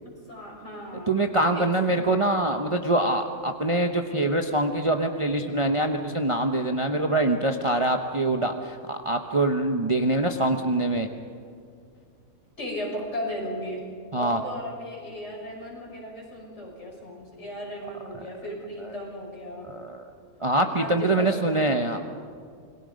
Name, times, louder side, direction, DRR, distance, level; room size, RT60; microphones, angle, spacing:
voice 1, 0.0-1.1 1.5-1.9 12.6-13.8 14.2-19.7 20.7-22.0, equal, 55° left, -2 dB, 6.3 m, -36 dB
voice 2, 1.1-11.1 14.1-14.4 19.6-20.0 20.4-22.0, right 2 dB, 25° right, 4 dB, 0.9 m, -24 dB
27.5 x 21.0 x 5.2 m, 2.2 s
omnidirectional pair, 1.5 m